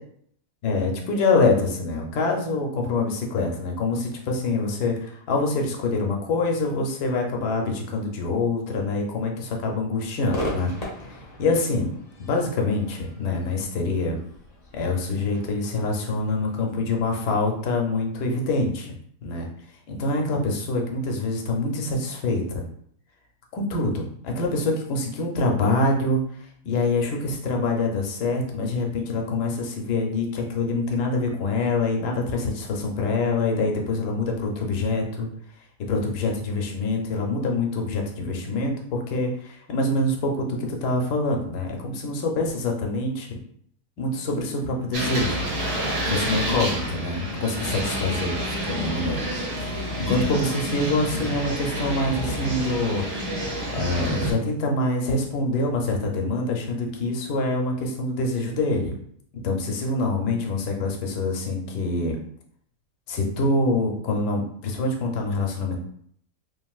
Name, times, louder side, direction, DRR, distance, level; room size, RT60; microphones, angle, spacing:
voice 1, 0.6-10.7 11.4-11.9 12.2-14.2 14.7-18.9 19.2-19.5 19.9-22.6 23.5-26.2 26.6-35.3 35.9-43.4 44.0-45.5 46.1-49.2 49.6-53.4 53.7-58.9 59.3-62.2 63.1-65.8, left 2 dB, 80° left, 1 dB, 1.2 m, -25 dB
Crowd / Fireworks, 10.3-17.6, left 1 dB, 50° left, 0.4 m, -38 dB
sound 1, 44.9-54.3, equal, 75° right, 1.4 m, -28 dB
3.2 x 2.5 x 2.3 m, 0.64 s
omnidirectional pair, 1.7 m